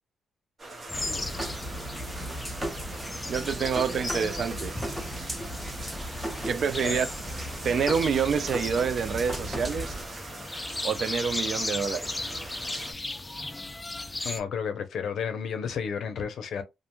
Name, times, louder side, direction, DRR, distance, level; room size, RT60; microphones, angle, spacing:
sound 1, 0.6-12.9, right 2 dB, 40° right, 0.7 m, -42 dB
sound 2, 0.9-14.4, left 2 dB, 20° left, 0.3 m, -37 dB
sound 3, 0.9-10.1, equal, 10° right, 0.8 m, -36 dB
voice 1, 3.3-4.8 6.5-7.1 7.6-10.0 10.8-12.3, right 6 dB, 65° right, 0.3 m, -27 dB
voice 2, 14.2-16.6, left 7 dB, 75° left, 0.5 m, -32 dB
2.5 x 2.1 x 2.9 m
cardioid pair, 100°, 0 cm